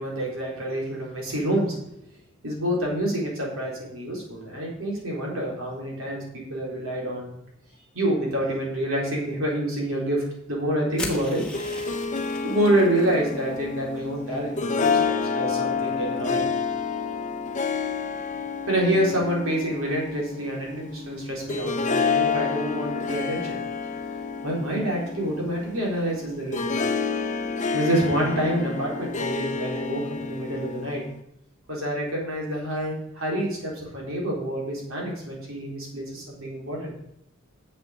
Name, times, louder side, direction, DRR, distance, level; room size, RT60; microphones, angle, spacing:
voice 1, 0.0-1.8 2.4-7.4 7.9-11.4 12.4-16.5 18.7-23.6 24.4-26.7 27.7-31.0 31.7-36.9, right 1 dB, 85° right, -3 dB, 3.9 m, -27 dB
sound 1, 11.0-13.2, left 2 dB, 5° left, 1.5 m, -37 dB
Harp, 11.3-31.2, left 5 dB, 35° left, 0.7 m, -29 dB
7.6 x 7.3 x 6.7 m, 0.77 s
head